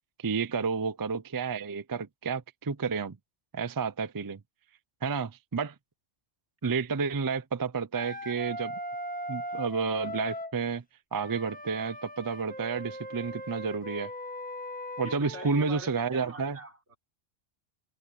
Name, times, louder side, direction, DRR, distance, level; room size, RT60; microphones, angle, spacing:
voice 1, 0.2-3.2 3.5-4.4 5.0-5.7 6.6-8.8 9.3-10.8 11.1-14.1 15.0-16.6, right 5 dB, 35° right, 0.3 m, -31 dB
Wind instrument woodwind instrument, 7.9-10.5 11.1-15.7, equal, 5° left, 1.3 m, -39 dB
voice 2, 15.0-17.0, right 2 dB, 60° right, 4.7 m, -44 dB
omnidirectional pair, 1.3 m